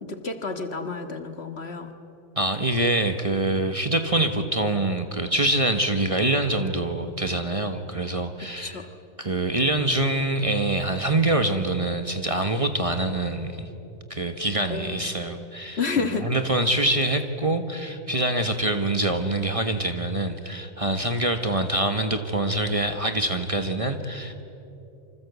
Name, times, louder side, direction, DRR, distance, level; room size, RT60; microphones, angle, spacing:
voice 1, 0.0-1.9 8.6-8.8 14.7-15.1 15.8-16.3, left 4 dB, 50° left, 7 dB, 1.8 m, -30 dB
voice 2, 2.4-8.8 9.2-13.7 14.1-24.4, right 1 dB, 25° right, 7 dB, 1.3 m, -25 dB
27.5 x 25.5 x 8.3 m, 2.8 s
omnidirectional pair, 1.4 m